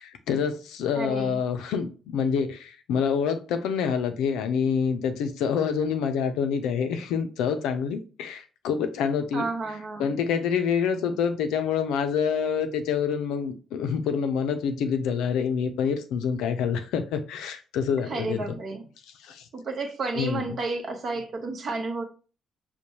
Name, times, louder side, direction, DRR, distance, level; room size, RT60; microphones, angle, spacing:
voice 1, 0.0-9.5 10.0-18.5 19.2-19.4 20.1-20.5, left 6 dB, 75° left, 0.4 m, -27 dB
voice 2, 1.0-1.4 9.3-10.2 18.1-18.9 19.5-22.0, right 3 dB, 55° right, 0.9 m, -31 dB
5.2 x 2.1 x 2.9 m
hypercardioid pair, 45°, 0 cm